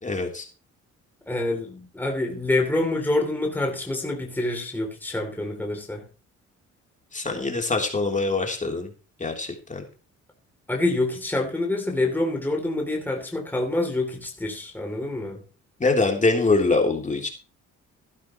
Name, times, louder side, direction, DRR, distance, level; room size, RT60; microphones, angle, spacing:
voice 1, 0.0-0.5 7.1-8.9 9.2-9.8 15.8-17.3, left 3 dB, 25° left, 2 dB, 3.3 m, -24 dB
voice 2, 1.3-6.1 10.7-15.4, left 2 dB, 5° left, 2 dB, 3.0 m, -26 dB
14.0 x 11.5 x 3.1 m, 0.35 s
cardioid pair, 90°, 30 cm